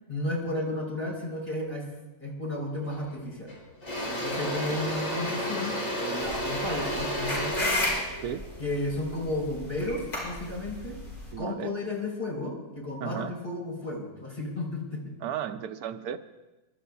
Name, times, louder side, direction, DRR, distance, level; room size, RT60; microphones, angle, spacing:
voice 1, 0.1-1.9 2.2-3.5 4.1-7.7 8.6-11.0 11.4-15.1, left 1 dB, 40° left, -3 dB, 4.5 m, -33 dB
Engine / Drill, 2.9-3.1 3.5-9.6, equal, 60° left, 3.7 m, -32 dB
sound 1, 6.2-11.3, left 1 dB, 75° left, 6.8 m, -33 dB
voice 2, 11.3-11.8 13.0-13.3 15.2-16.2, right 9 dB, 80° right, 10 dB, 1.2 m, -34 dB
28.0 x 12.5 x 2.4 m, 1.1 s
omnidirectional pair, 1.6 m